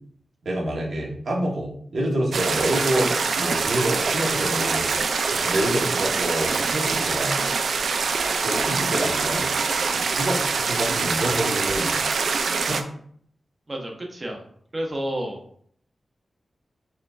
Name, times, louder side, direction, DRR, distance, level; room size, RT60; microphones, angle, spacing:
voice 1, 0.4-4.8 5.3-7.4 8.4-9.5 9.9-11.9 12.6-12.8, right 1 dB, 65° right, -2 dB, 1.1 m, -27 dB
sound 1, 2.3-12.8, right 4 dB, 80° right, 0.3 m, -24 dB
voice 2, 8.6-8.9 13.7-14.4 14.7-15.4, right 1 dB, 25° right, 1 dB, 0.7 m, -31 dB
4.3 x 3.8 x 2.3 m, 0.62 s
wide cardioid pair, 180°, 0 cm